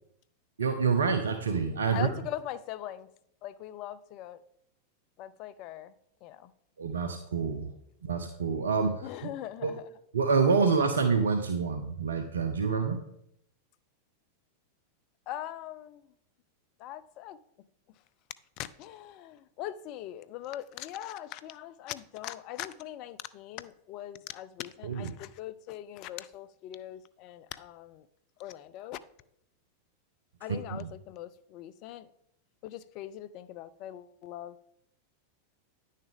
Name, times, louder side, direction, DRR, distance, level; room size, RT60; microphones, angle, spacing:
voice 1, 0.6-2.1 6.8-7.7 8.0-9.3 9.6-9.7 10.1-13.0 24.8-25.1 30.5-30.9, right 5 dB, 70° right, 0.7 m, -27 dB
voice 2, 1.9-3.1 3.4-4.4 5.2-5.9 6.2-6.5 9.0-9.9 15.3-16.0 16.8-17.4 18.6-28.1 28.4-29.0 30.4-32.1 32.6-34.7, left 12 dB, 40° left, 0.5 m, -41 dB
9.9 x 6.5 x 3.6 m
figure-of-eight pair, 90°, 0 cm